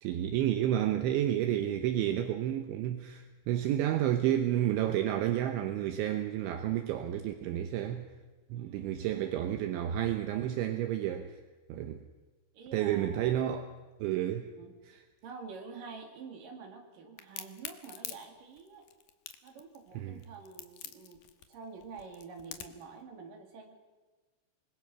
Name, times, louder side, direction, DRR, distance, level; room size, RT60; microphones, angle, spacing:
voice 1, 0.0-8.1 8.5-11.4 11.7-12.0 12.7-13.6 14.0-14.5 19.9-20.2, right 11 dB, 75° right, 3.2 m, -30 dB
voice 2, 8.5-8.9 12.5-13.3 14.6-14.8 15.2-18.8 19.4-21.2 21.5-23.8, right 4 dB, 50° right, 3.6 m, -47 dB
Crack, 17.2-22.9, left 11 dB, 75° left, 2.1 m, -45 dB
26.0 x 21.0 x 6.1 m
omnidirectional pair, 5.8 m